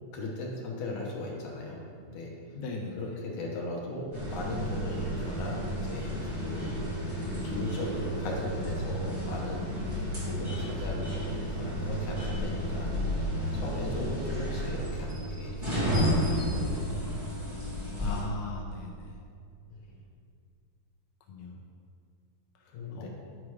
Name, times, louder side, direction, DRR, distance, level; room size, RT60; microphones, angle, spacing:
voice 1, 0.1-2.3 3.0-6.9 7.4-9.9 10.3-13.3 13.5-16.7 19.7-20.0 22.7-23.1, left 2 dB, 65° left, -1 dB, 2.1 m, -38 dB
voice 2, 2.6-3.1 18.0-19.1 21.3-21.5 22.9-23.1, left 3 dB, 85° left, 0 dB, 1.7 m, -38 dB
sound 1, 4.1-18.2, equal, 25° right, 0.5 m, -32 dB
10.5 x 4.9 x 4.9 m, 2.2 s
omnidirectional pair, 4.3 m